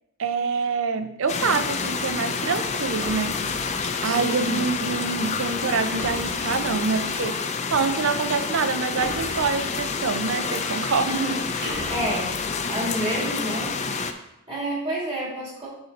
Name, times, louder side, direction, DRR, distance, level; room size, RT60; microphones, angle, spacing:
voice 1, 0.2-3.4 4.0-7.4 7.7-11.2, right 5 dB, 60° right, 10 dB, 0.5 m, -26 dB
sound 1, 1.3-14.1, left 5 dB, 30° left, 0.4 m, -28 dB
sound 2, 3.0-4.0 5.9-7.0 9.0-10.1 11.6-12.7, equal, 80° right, 2.0 m, -37 dB
voice 2, 4.0-4.7 11.0-13.7 14.5-15.7, right 1 dB, 25° right, -5 dB, 2.2 m, -29 dB
6.8 x 6.4 x 2.8 m, 0.84 s
head